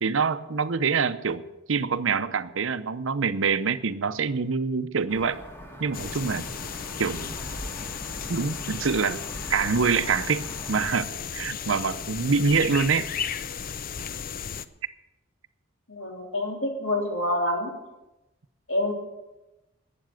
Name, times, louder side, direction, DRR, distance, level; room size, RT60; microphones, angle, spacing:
voice 1, 0.0-5.4 5.8-6.5 7.0-7.4 8.3-9.2 9.5-13.1, right 5 dB, 70° right, 12 dB, 0.7 m, -25 dB
sound 1, 5.1-10.7, equal, 10° left, 1.7 m, -41 dB
sound 2, 5.9-14.7, left 7 dB, 45° left, 0.6 m, -35 dB
voice 2, 15.9-17.7 18.7-18.9, left 1 dB, 75° left, 1 dB, 3.4 m, -27 dB
12.5 x 8.5 x 9.2 m, 1.0 s
head